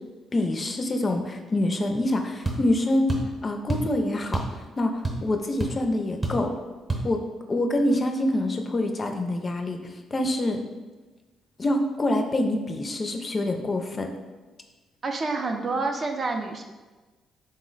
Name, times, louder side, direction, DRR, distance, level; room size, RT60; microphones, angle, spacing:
voice 1, 0.3-6.5 7.0-7.2 7.5-10.6 11.6-14.1, left 1 dB, 30° left, 4 dB, 0.4 m, -26 dB
sound 1, 2.4-2.6 3.1-3.3 3.7-3.9 4.3-4.6 4.8-5.3 5.6-5.7 6.2-6.5 6.9-7.1, right 2 dB, 25° right, 0.8 m, -28 dB
voice 2, 15.0-16.6, right 3 dB, 40° right, 3 dB, 0.4 m, -28 dB
3.9 x 2.0 x 3.8 m, 1.2 s
cardioid pair, 90°, 0 cm